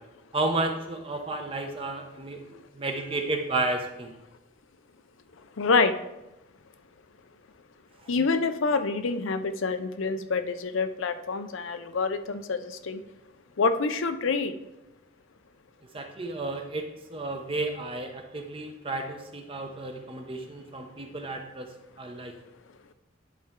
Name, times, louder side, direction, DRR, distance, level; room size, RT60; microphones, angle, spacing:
voice 1, 0.3-4.1 15.9-16.8 17.1-21.7 22.0-22.3, right 2 dB, 25° right, 4 dB, 0.8 m, -32 dB
voice 2, 5.6-5.9 8.1-13.0 13.6-14.5, left 4 dB, 70° left, 10 dB, 0.5 m, -27 dB
10.5 x 4.3 x 3.7 m, 0.93 s
head